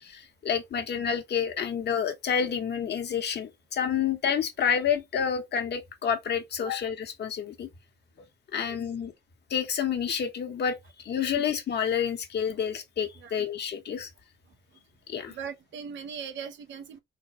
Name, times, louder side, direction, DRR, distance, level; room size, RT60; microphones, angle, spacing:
voice 1, 0.0-7.7 8.5-9.1 9.5-14.1 15.1-15.3, left 7 dB, 55° left, 1.2 m, -29 dB
voice 2, 15.3-17.0, right 7 dB, 70° right, 0.8 m, -39 dB
3.9 x 2.2 x 2.9 m
cardioid pair, 90°, 20 cm